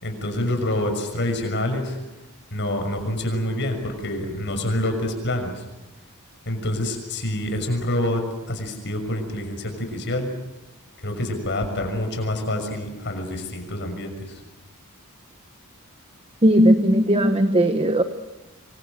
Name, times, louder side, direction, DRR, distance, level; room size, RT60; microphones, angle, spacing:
voice 1, 0.0-2.0 2.5-5.6 6.5-8.2 8.5-10.3 11.0-14.4, left 1 dB, 55° left, 5 dB, 6.3 m, -27 dB
voice 2, 16.4-18.0, equal, 25° right, 8 dB, 1.2 m, -17 dB
26.0 x 24.5 x 7.7 m, 1.0 s
head